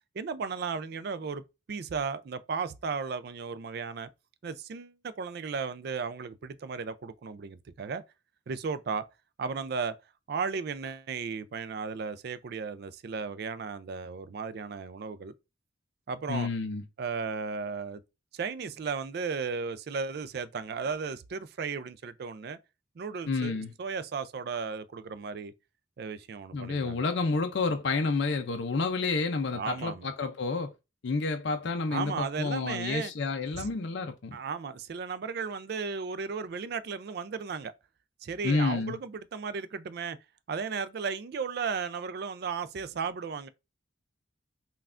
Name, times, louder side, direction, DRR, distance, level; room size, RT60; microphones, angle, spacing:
voice 1, 0.1-1.4 1.7-4.1 4.4-8.0 8.5-9.0 9.4-9.9 10.3-15.3 16.1-16.5 17.0-18.0 18.3-22.6 23.0-25.5 26.0-27.1 29.5-30.1 31.9-33.1 33.6-33.7 34.3-37.7 38.2-40.2 40.5-43.5, right 5 dB, 50° right, 0.3 m, -35 dB
voice 2, 16.3-16.8 23.3-23.7 26.5-30.7 31.0-34.4 38.4-39.0, left 4 dB, 55° left, 0.4 m, -29 dB
5.5 x 2.3 x 2.4 m
head